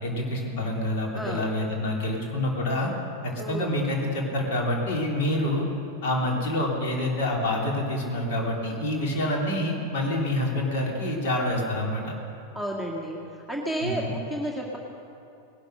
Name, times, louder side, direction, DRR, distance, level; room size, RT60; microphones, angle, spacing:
voice 1, 0.0-2.9 3.2-5.6 6.0-12.1 13.8-14.1, left 1 dB, 55° left, -1 dB, 3.2 m, -27 dB
voice 2, 1.1-1.5 3.4-3.7 12.5-13.2 13.5-14.8, right 1 dB, 5° left, -2 dB, 2.0 m, -31 dB
19.0 x 12.0 x 6.4 m, 2.7 s
figure-of-eight pair, 90°, 0 cm